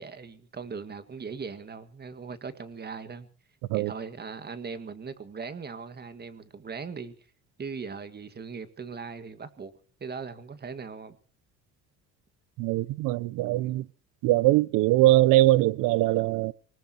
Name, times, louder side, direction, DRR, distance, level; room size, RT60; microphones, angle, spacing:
voice 1, 0.0-3.3 3.7-7.1 7.6-9.7 10.0-11.2 13.6-13.8, right 5 dB, 30° right, 2.0 m, -39 dB
voice 2, 12.6-13.8 14.2-16.5, right 17 dB, 80° right, 0.7 m, -22 dB
25.0 x 19.5 x 3.0 m
cardioid pair, 95°, 32 cm